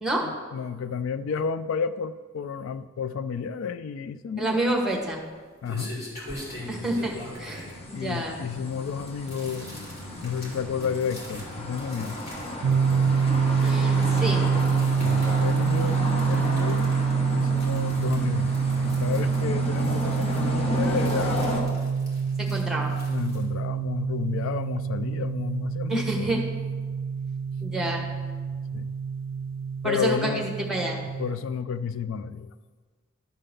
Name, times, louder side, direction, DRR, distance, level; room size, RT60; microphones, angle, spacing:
voice 1, 0.2-4.7 5.6-5.9 7.9-9.8 10.2-12.2 15.0-16.0 16.3-16.9 17.3-18.5 18.8-21.5 23.0-26.3 28.7-28.9 29.8-30.4 31.2-32.5, left 6 dB, 80° left, 13 dB, 0.3 m, -31 dB
voice 2, 4.4-5.2 6.7-7.1 7.4-8.3 13.6-14.4 22.4-22.9 25.9-26.4 27.6-28.0 29.8-31.0, right 1 dB, 5° right, 0 dB, 1.2 m, -28 dB
sound 1, 4.9-23.4, left 1 dB, 50° left, 2.5 m, -44 dB
sound 2, 6.3-21.6, left 1 dB, 30° left, 1.1 m, -33 dB
sound 3, 12.6-31.3, right 6 dB, 75° right, 0.3 m, -26 dB
11.5 x 3.8 x 6.6 m, 1.5 s
head